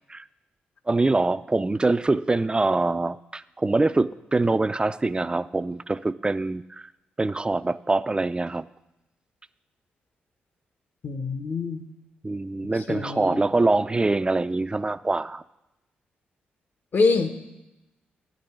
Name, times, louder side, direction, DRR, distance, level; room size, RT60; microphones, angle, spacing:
voice 1, 0.9-6.9 7.2-8.6 12.2-15.4, right 2 dB, 20° right, 15 dB, 0.4 m, -24 dB
voice 2, 11.0-11.9 12.9-13.4 16.9-17.3, left 4 dB, 60° left, 8 dB, 1.1 m, -24 dB
10.0 x 5.4 x 8.1 m, 0.93 s
supercardioid pair, 45°, 4 cm